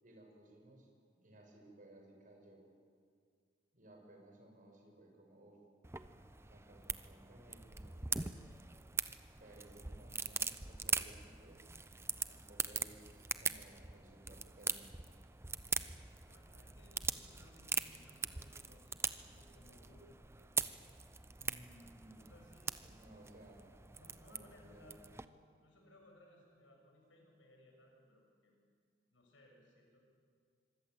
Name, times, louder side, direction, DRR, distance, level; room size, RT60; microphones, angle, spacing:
voice 1, 0.0-2.7 3.7-5.6 6.5-8.4 9.4-11.7 12.3-14.9 21.4-22.2 22.8-23.7 24.3-25.1, right 1 dB, 45° right, 1 dB, 6.2 m, -59 dB
sound 1, 5.8-25.2, right 5 dB, 15° right, 0.7 m, -42 dB
voice 2, 16.2-20.1 22.2-22.8 24.0-25.0 25.5-28.5 29.1-30.0, left 1 dB, 80° left, 1 dB, 7.0 m, -63 dB
25.5 x 23.5 x 8.1 m, 2.1 s
head